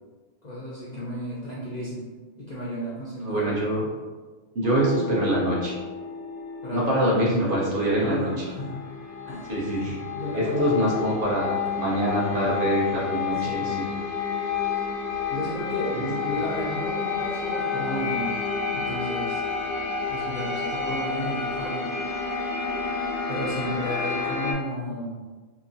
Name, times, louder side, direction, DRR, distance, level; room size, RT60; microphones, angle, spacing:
voice 1, 0.4-2.1 2.4-3.5 6.6-7.1 8.0-8.9 9.3-10.9 13.4-13.8 15.3-18.3 18.7-19.4 20.1-21.9 23.3-25.3, equal, 50° left, -7 dB, 0.5 m, -33 dB
voice 2, 3.2-3.9 4.5-5.7 6.7-8.5 9.5-10.0 10.3-13.9 15.9-16.1, right 1 dB, 55° right, -5 dB, 0.8 m, -25 dB
sound 1, 4.6-24.5, left 5 dB, 75° left, 0.9 m, -30 dB
2.9 x 2.4 x 2.5 m, 1.4 s
omnidirectional pair, 1.2 m